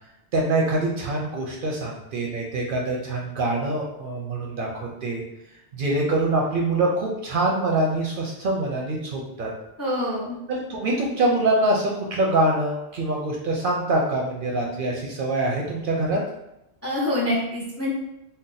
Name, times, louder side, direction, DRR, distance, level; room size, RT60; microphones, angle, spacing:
voice 1, 0.3-4.7 5.0-5.2 5.7-9.5 10.5-16.2, right 2 dB, 60° right, -2 dB, 0.6 m, -24 dB
voice 2, 9.8-10.4 16.8-17.9, left 1 dB, 20° left, -5 dB, 0.4 m, -25 dB
2.6 x 2.2 x 3.8 m, 0.86 s
omnidirectional pair, 1.2 m